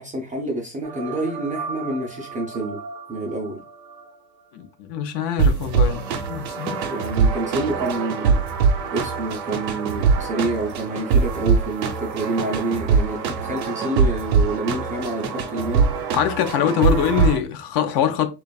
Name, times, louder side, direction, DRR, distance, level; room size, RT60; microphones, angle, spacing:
voice 1, 0.0-2.8 3.1-3.6 6.9-8.4 8.9-15.9, right 2 dB, 20° right, 0.3 m, -28 dB
sound 1, 0.8-3.5 3.9-4.0 5.4-17.4, right 5 dB, 85° right, 0.6 m, -23 dB
voice 2, 4.5-6.0 6.3-6.8 16.1-18.3, left 9 dB, 50° left, 0.6 m, -23 dB
2.5 x 2.3 x 2.2 m
hypercardioid pair, 70°, 50 cm